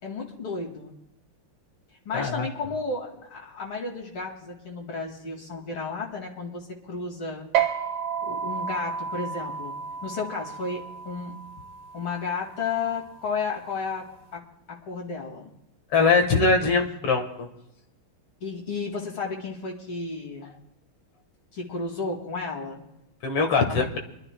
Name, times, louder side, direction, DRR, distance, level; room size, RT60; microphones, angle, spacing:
voice 1, 0.0-0.9 2.0-7.5 8.2-11.3 11.9-15.5 18.4-20.5 21.5-22.8 23.7-23.9, left 4 dB, 70° left, -1 dB, 3.1 m, -33 dB
voice 2, 2.1-2.5 15.9-17.5 23.2-24.0, left 4 dB, 85° left, 4 dB, 2.6 m, -22 dB
sound 1, 7.5-14.3, right 7 dB, 80° right, 2.0 m, -32 dB
26.5 x 12.5 x 2.3 m, 0.86 s
omnidirectional pair, 2.4 m